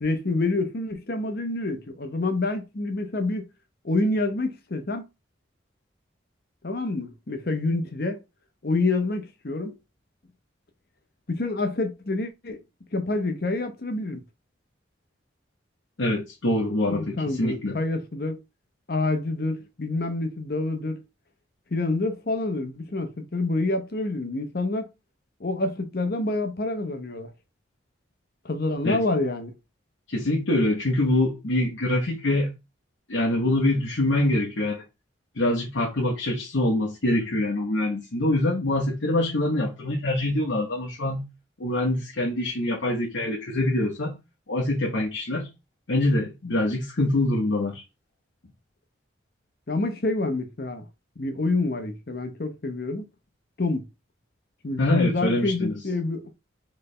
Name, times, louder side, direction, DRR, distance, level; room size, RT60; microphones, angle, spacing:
voice 1, 0.0-3.5 3.8-5.1 6.6-8.2 8.6-9.8 11.3-12.6 12.9-14.2 16.9-18.4 18.9-21.0 21.7-24.9 25.4-27.3 28.4-29.5 49.7-50.8 51.2-53.1 53.6-53.8 54.6-56.3, left 2 dB, 50° left, 0.8 m, -27 dB
voice 2, 16.0-17.8 28.8-29.0 30.1-32.5 33.1-34.8 35.3-41.3 41.6-44.2 44.5-45.5 45.9-47.8 54.8-55.7, left 1 dB, 80° left, 1.0 m, -24 dB
4.4 x 3.3 x 3.2 m
head